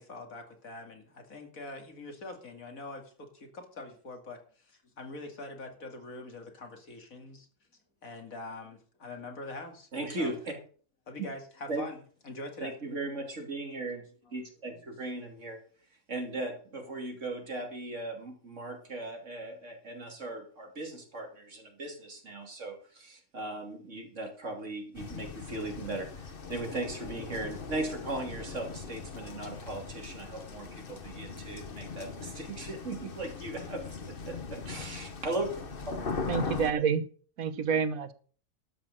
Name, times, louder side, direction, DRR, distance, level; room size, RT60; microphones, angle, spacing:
voice 1, 0.0-4.4 4.6-7.5 8.0-9.9 10.2-10.3 11.1-12.0 12.2-12.7, left 2 dB, 80° left, 4 dB, 2.7 m, -43 dB
voice 2, 9.9-10.5 11.7-11.8 12.6-14.0 14.3-15.6 16.1-36.0, right 2 dB, 60° right, 3 dB, 3.1 m, -38 dB
sound 1, 24.9-36.7, left 4 dB, 45° left, 1.3 m, -40 dB
voice 3, 36.3-37.0 37.4-38.1, right 6 dB, 85° right, 13 dB, 1.4 m, -28 dB
12.0 x 5.9 x 7.8 m, 0.43 s
omnidirectional pair, 1.4 m